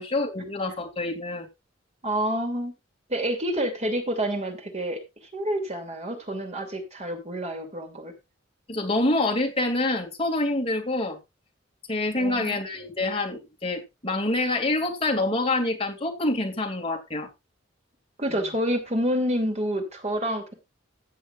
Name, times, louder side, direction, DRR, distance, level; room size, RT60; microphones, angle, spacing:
voice 1, 0.0-1.5 8.7-11.2 11.9-17.3, left 2 dB, 30° left, 3 dB, 2.6 m, -26 dB
voice 2, 2.0-2.7 3.1-5.0 5.3-8.1 12.2-12.6 18.2-20.5, equal, 35° right, 4 dB, 2.9 m, -28 dB
15.0 x 9.2 x 2.5 m, 0.24 s
head